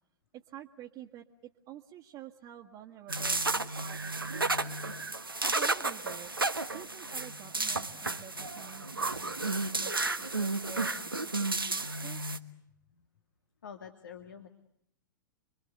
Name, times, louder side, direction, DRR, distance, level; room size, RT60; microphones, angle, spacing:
voice 1, 0.3-4.7 5.5-6.3 6.7-12.4, right 11 dB, 35° right, -2 dB, 1.8 m, -49 dB
sound 1, 3.1-12.4, right 3 dB, 85° right, 1.4 m, -32 dB
voice 2, 13.6-14.5, left 7 dB, 70° left, 6 dB, 2.2 m, -47 dB
29.5 x 24.0 x 8.0 m, 0.73 s
figure-of-eight pair, 100°, 11 cm